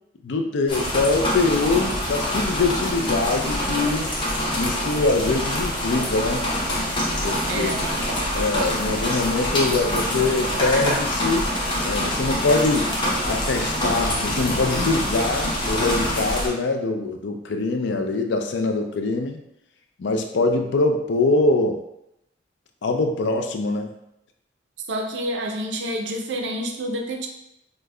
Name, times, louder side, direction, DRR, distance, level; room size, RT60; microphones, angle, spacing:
voice 1, 0.2-4.1 4.6-6.5 7.2-7.7 8.3-11.5 11.8-12.9 13.3-19.4 20.0-21.8 22.8-24.0, left 3 dB, 75° left, 5 dB, 0.4 m, -23 dB
sound 1, 0.7-16.5, equal, 25° left, 0.7 m, -25 dB
voice 2, 7.5-7.8 24.9-27.3, right 1 dB, 75° right, 2 dB, 0.4 m, -28 dB
5.0 x 2.1 x 2.3 m, 0.82 s
head